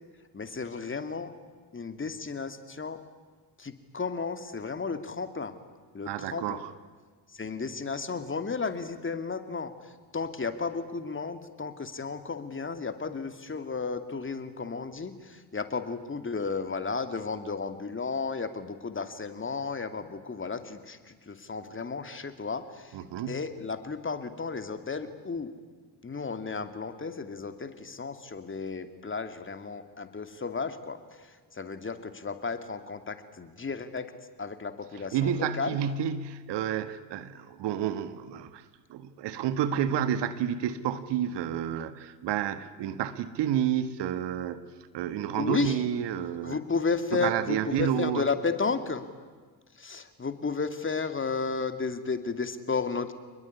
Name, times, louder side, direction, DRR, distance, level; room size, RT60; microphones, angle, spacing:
voice 1, 0.3-1.3 1.7-3.0 3.6-5.5 5.9-6.6 7.3-23.0 23.3-25.5 26.0-34.1 34.4-35.8 45.3-45.8 46.4-49.1 49.8-53.1, left 4 dB, 25° left, 9 dB, 2.7 m, -33 dB
voice 2, 6.1-6.7 22.9-23.4 35.1-38.6 38.9-44.6 44.9-46.6 47.1-48.3, right 9 dB, 60° right, 12 dB, 1.7 m, -30 dB
29.0 x 21.0 x 9.9 m, 1.4 s
hypercardioid pair, 60°, 47 cm